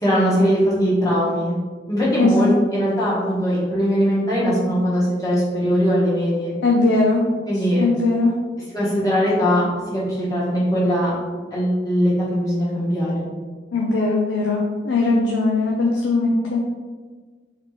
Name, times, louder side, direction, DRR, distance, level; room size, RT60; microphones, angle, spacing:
voice 1, 0.0-1.5 1.9-6.5 7.4-7.8 8.7-11.1 11.5-13.2, equal, 20° left, -8 dB, 1.2 m, -20 dB
voice 2, 2.2-2.5 6.6-7.2 7.8-8.3 13.7-16.6, left 3 dB, 75° left, -2 dB, 0.5 m, -19 dB
3.6 x 3.6 x 3.1 m, 1.5 s
head